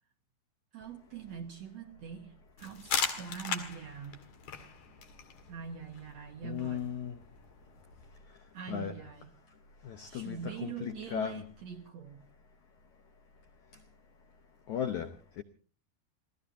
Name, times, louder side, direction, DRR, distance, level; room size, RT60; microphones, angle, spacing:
voice 1, 0.7-4.2 5.5-7.0 8.5-9.4 10.1-12.2, right 7 dB, 60° right, 2.0 m, -44 dB
sound 1, 2.6-8.1, left 6 dB, 50° left, 2.8 m, -39 dB
voice 2, 6.4-7.2 8.7-8.9 9.8-11.5 14.7-15.4, left 8 dB, 75° left, 1.7 m, -36 dB
28.0 x 18.0 x 2.7 m
omnidirectional pair, 4.8 m